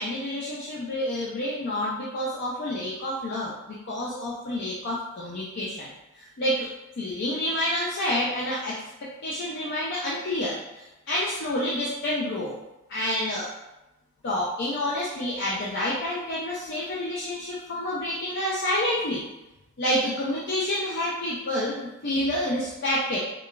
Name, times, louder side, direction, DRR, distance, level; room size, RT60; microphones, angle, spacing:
voice 1, 0.0-5.9 6.2-6.7 7.0-12.6 12.9-13.5 14.2-19.2 19.8-23.2, left 1 dB, 55° left, -6 dB, 0.5 m, -28 dB
4.7 x 2.2 x 2.4 m, 0.98 s
head